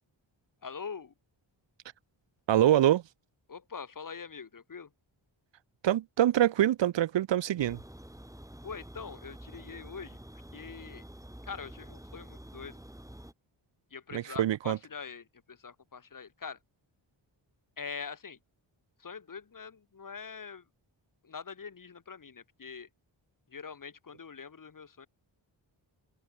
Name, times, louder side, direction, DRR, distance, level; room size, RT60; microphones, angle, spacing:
voice 1, 0.6-1.1 3.5-4.9 8.6-10.2 10.5-11.0 11.4-12.8 13.9-16.6 17.8-18.4 19.0-20.6 21.2-22.9 23.5-25.1, left 6 dB, 40° left, 1.6 m, -43 dB
voice 2, 2.5-3.0 5.8-7.8 14.1-14.8, right 12 dB, 65° right, 0.6 m, -25 dB
sound 1, 7.6-13.3, right 1 dB, 5° right, 7.9 m, -48 dB
wide cardioid pair, 105°, 48 cm